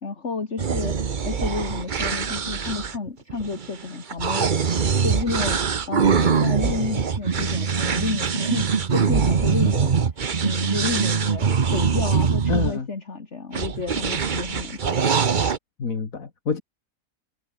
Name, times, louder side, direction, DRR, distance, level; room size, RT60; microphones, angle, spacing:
voice 1, 0.0-4.5 5.0-9.9 10.3-14.8, left 4 dB, 50° left, 2.8 m, -30 dB
sound 1, 0.6-12.7 13.5-15.6, right 6 dB, 40° right, 1.0 m, -23 dB
voice 2, 12.5-12.9 15.8-16.6, left 5 dB, 70° left, 2.5 m, -27 dB
omnidirectional pair, 1.5 m